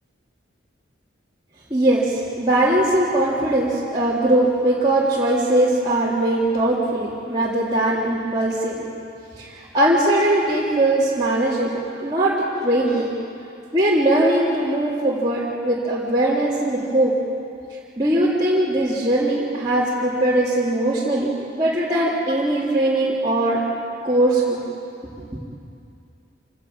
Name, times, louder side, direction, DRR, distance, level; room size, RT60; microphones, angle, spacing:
voice 1, 1.7-8.9 9.4-13.1 13.7-17.1 18.0-23.6 24.0-24.6, right 1 dB, 20° right, -10 dB, 3.3 m, -20 dB
28.0 x 16.0 x 8.9 m, 2.6 s
head